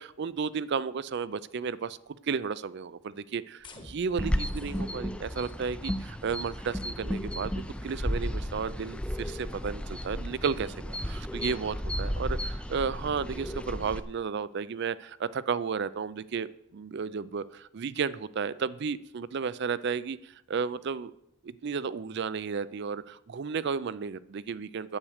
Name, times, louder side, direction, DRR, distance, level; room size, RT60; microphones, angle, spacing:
voice 1, 0.0-21.1 21.4-25.0, right 6 dB, 55° right, 18 dB, 0.4 m, -33 dB
sound 1, 3.6-9.7, left 2 dB, 20° left, 1.2 m, -56 dB
sound 2, 4.2-14.0, equal, 5° left, 0.4 m, -34 dB
8.8 x 8.2 x 6.5 m, 0.79 s
head